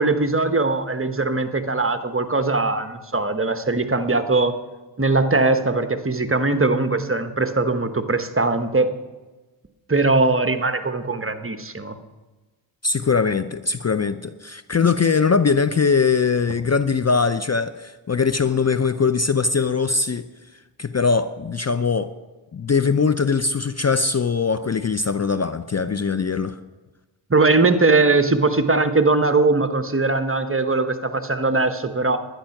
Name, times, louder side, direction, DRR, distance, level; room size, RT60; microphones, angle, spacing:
voice 1, 0.0-4.6 5.0-8.9 9.9-12.0 27.3-32.2, right 3 dB, 25° right, 9 dB, 1.1 m, -20 dB
voice 2, 12.8-20.3 20.8-22.1 22.5-26.6, left 5 dB, 35° left, 12 dB, 0.5 m, -21 dB
11.5 x 10.0 x 5.9 m, 1.2 s
cardioid pair, 45°, 49 cm